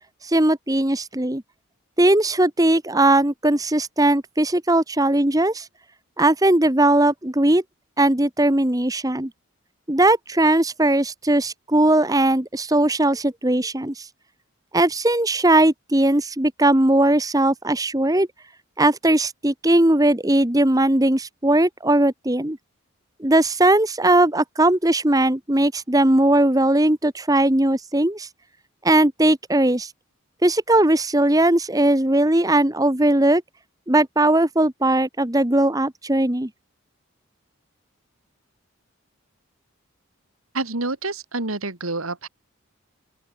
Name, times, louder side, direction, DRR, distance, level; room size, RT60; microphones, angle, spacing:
voice 1, 0.2-1.4 2.0-5.7 6.2-7.6 8.0-9.3 9.9-14.1 14.7-18.3 18.8-22.6 23.2-28.3 28.8-29.9 30.4-33.4 33.9-36.5, right 1 dB, 15° right, 1.4 m, -19 dB
voice 2, 40.5-42.3, right 2 dB, 85° right, 3.4 m, -28 dB
open air
head